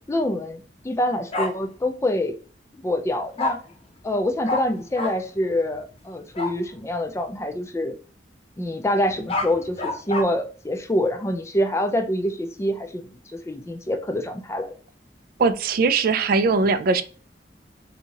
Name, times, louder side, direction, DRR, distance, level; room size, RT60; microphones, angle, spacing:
voice 1, 0.1-0.6 0.8-2.3 2.8-3.6 4.0-7.9 8.6-14.8, left 1 dB, 15° left, 0.4 m, -26 dB
Bark, 1.3-1.5 3.4-3.5 4.5-4.6 5.0-5.1 6.3-6.5 9.1-10.2, left 3 dB, 35° left, 0.8 m, -26 dB
voice 2, 15.4-17.0, right 4 dB, 55° right, 0.4 m, -20 dB
3.5 x 2.8 x 2.8 m
head